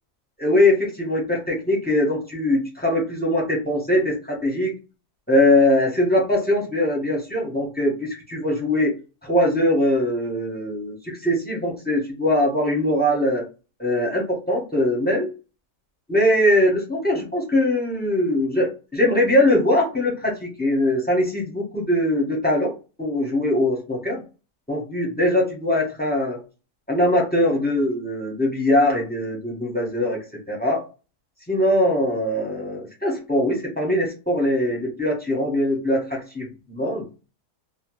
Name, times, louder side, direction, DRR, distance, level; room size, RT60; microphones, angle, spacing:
voice 1, 0.4-4.7 5.3-8.9 9.2-13.5 13.8-15.3 16.1-22.7 23.0-24.2 24.7-26.4 26.9-30.2 30.5-30.8 31.5-37.0, left 1 dB, 10° left, -3 dB, 0.4 m, -21 dB
2.7 x 2.1 x 2.9 m, 0.32 s
omnidirectional pair, 1.7 m